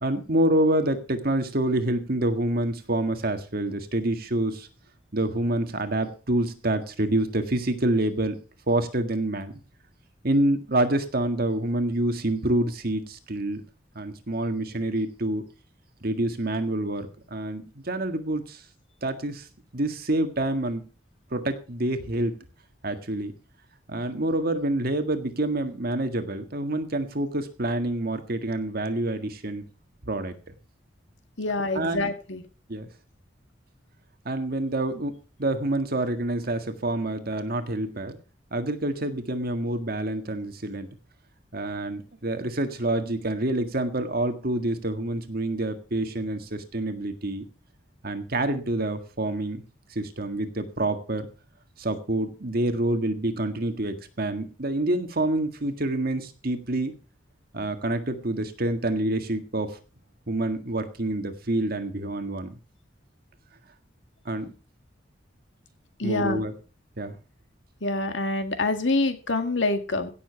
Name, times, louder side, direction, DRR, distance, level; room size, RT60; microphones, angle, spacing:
voice 1, 0.0-4.7 5.1-8.4 8.7-9.5 10.2-13.6 14.0-15.4 16.0-18.6 19.0-19.5 19.7-20.9 21.3-22.3 22.8-23.3 23.9-29.6 30.0-30.3 31.7-32.1 32.7-32.9 34.3-38.2 38.5-40.9 41.5-47.5 48.0-49.6 50.0-51.3 51.8-57.0 57.5-59.8 60.3-62.6 64.3-64.5 66.0-66.5 67.0-67.2, right 1 dB, 55° right, 7 dB, 1.7 m, -27 dB
voice 2, 31.4-32.4 66.0-66.4 67.8-70.1, left 2 dB, 75° left, 7 dB, 2.0 m, -26 dB
16.5 x 7.0 x 5.7 m, 0.36 s
head